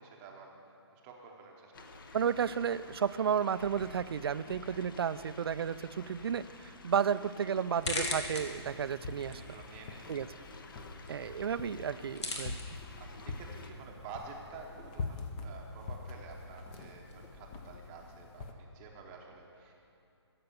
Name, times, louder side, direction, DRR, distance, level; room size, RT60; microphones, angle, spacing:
voice 1, 0.0-2.0 2.8-2.9 4.7-4.8 6.0-6.2 9.3-11.4 13.0-19.7, right 4 dB, 15° right, 0 dB, 0.8 m, -51 dB
sound 1, 1.7-13.7, left 3 dB, 50° left, 0.9 m, -52 dB
voice 2, 2.1-9.4 10.1-10.3 11.1-12.6, right 7 dB, 60° right, 15 dB, 0.4 m, -32 dB
sound 2, 6.0-17.3, left 2 dB, 75° left, 2.0 m, -44 dB
sound 3, 7.8-18.5, left 4 dB, 20° left, 0.5 m, -45 dB
16.0 x 6.8 x 6.8 m, 2.7 s
hypercardioid pair, 165°, 14 cm